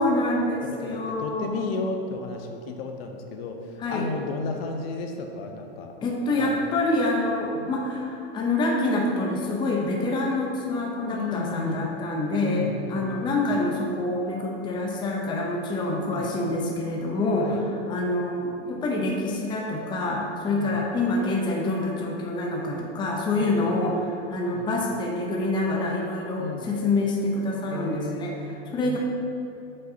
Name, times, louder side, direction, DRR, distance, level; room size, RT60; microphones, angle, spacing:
voice 1, 0.0-1.7 3.8-4.1 6.0-29.0, left 2 dB, 15° left, -1 dB, 0.6 m, -26 dB
voice 2, 0.6-5.9 6.4-6.6 7.5-7.7 11.1-11.9 12.4-13.4 16.1-16.3 17.4-17.6 20.5-20.8 23.4-23.7 24.5-24.8 26.4-26.7 27.7-29.0, left 3 dB, 65° left, 4 dB, 0.8 m, -33 dB
7.9 x 5.4 x 2.7 m, 2.7 s
supercardioid pair, 140°, 32 cm